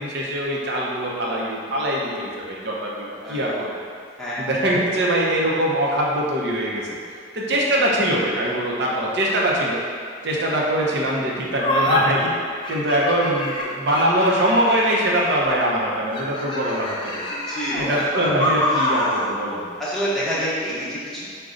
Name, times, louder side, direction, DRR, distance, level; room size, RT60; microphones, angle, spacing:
voice 1, 0.0-3.8 4.4-7.0 7.3-9.8 10.2-12.3 12.7-17.2 17.7-19.6, right 1 dB, 55° right, -3 dB, 0.7 m, -22 dB
sound 1, 11.6-12.0 12.6-15.5 16.1-19.3, left 1 dB, 25° left, 0.4 m, -26 dB
voice 2, 17.3-17.9 19.8-21.3, equal, ahead, -10 dB, 0.9 m, -27 dB
5.0 x 2.2 x 3.7 m, 2.2 s
head